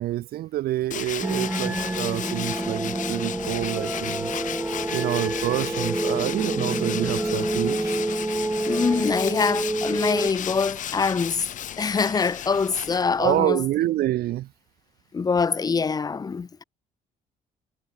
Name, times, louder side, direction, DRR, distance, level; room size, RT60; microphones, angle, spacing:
voice 1, 0.0-4.3 4.9-8.0 13.2-14.5, right 15 dB, 65° right, 0.7 m, -27 dB
Tools, 0.9-13.4, left 10 dB, 50° left, 0.9 m, -34 dB
sound 1, 1.2-10.3, right 2 dB, 10° right, 0.8 m, -28 dB
sound 2, 1.7-8.7, left 16 dB, 75° left, 1.3 m, -49 dB
voice 2, 8.7-11.5 11.8-13.6 15.1-16.6, left 5 dB, 25° left, 0.7 m, -24 dB
cardioid pair, 110°, 17 cm